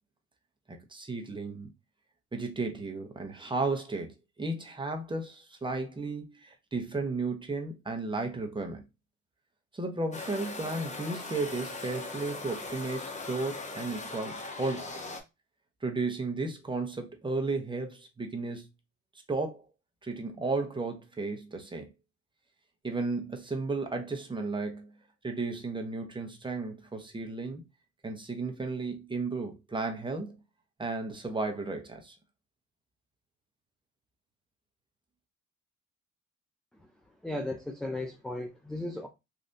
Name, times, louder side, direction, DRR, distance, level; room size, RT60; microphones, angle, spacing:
voice 1, 0.7-1.7 2.3-8.8 9.7-14.9 15.8-18.7 19.3-19.6 20.0-21.9 22.8-24.9 25.2-27.6 28.0-30.4 30.8-32.2, right 3 dB, 15° right, 0.7 m, -34 dB
sound 1, 10.1-15.2, left 3 dB, 25° left, 0.8 m, -40 dB
voice 2, 37.2-39.1, left 1 dB, ahead, 0.4 m, -35 dB
3.3 x 2.6 x 2.6 m
cardioid pair, 90°, 30 cm